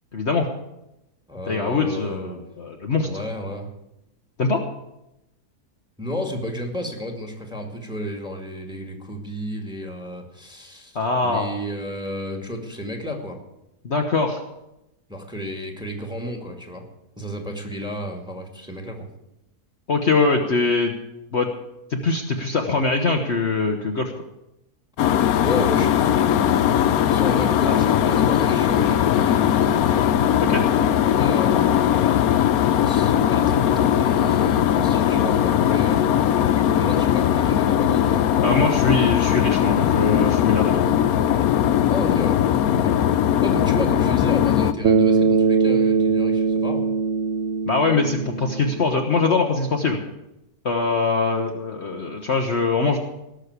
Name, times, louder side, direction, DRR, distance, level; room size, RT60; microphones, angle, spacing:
voice 1, 0.1-0.5 1.5-2.3 2.6-3.1 4.4-4.7 10.9-11.5 13.8-14.4 19.9-20.9 21.3-21.5 21.9-24.1 27.6-27.7 30.4-30.7 38.4-40.8 47.7-50.0 50.6-53.0, left 3 dB, 45° left, 2 dB, 1.3 m, -22 dB
voice 2, 1.3-2.4 3.0-3.7 6.0-11.0 11.2-13.4 15.1-16.9 17.2-19.1 25.4-30.1 30.8-32.1 32.8-36.0 36.5-38.6 41.9-42.9 43.4-46.9, equal, 5° right, 3 dB, 2.0 m, -32 dB
sound 1, 25.0-44.7, left 10 dB, 70° left, 1.1 m, -19 dB
Bass guitar, 44.8-49.2, right 5 dB, 55° right, 1.0 m, -21 dB
18.0 x 6.5 x 8.2 m, 0.89 s
omnidirectional pair, 1.7 m